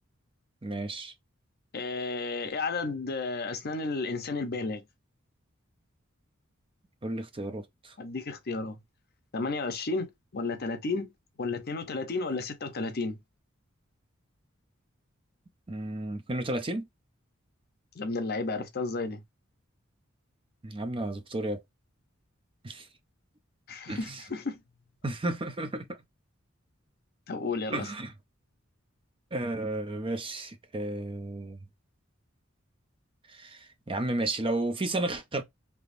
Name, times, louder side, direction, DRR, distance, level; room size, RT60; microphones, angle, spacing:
voice 1, 0.6-1.1 7.0-7.9 15.7-16.9 20.6-21.6 22.6-22.9 23.9-24.2 25.0-25.9 27.7-28.1 29.3-31.6 33.3-35.4, right 2 dB, 25° right, 0.6 m, -33 dB
voice 2, 1.7-4.8 8.0-8.8 9.3-11.1 11.4-13.2 18.0-19.2 23.7-24.6 27.3-27.9, left 3 dB, 50° left, 0.7 m, -32 dB
3.4 x 2.9 x 2.5 m
head